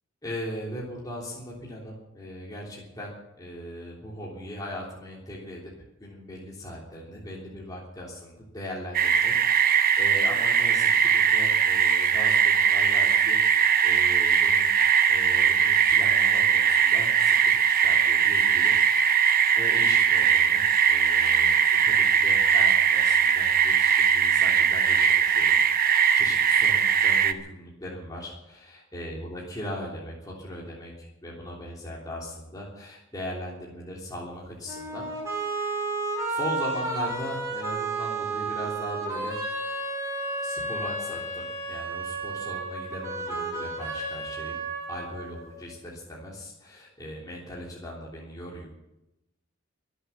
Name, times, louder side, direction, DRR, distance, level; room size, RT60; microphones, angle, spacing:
voice 1, 0.2-3.1 3.4-5.7 6.0-14.7 15.1-25.6 25.9-35.1 35.5-35.8 36.3-39.4 40.4-44.6 44.9-48.7, left 1 dB, 20° left, -4 dB, 3.3 m, -39 dB
sound 1, 8.9-27.3, right 7 dB, 45° right, 0.9 m, -21 dB
sound 2, 34.7-45.6, right 2 dB, 15° right, 5.7 m, -32 dB
24.0 x 8.1 x 7.2 m, 0.90 s
head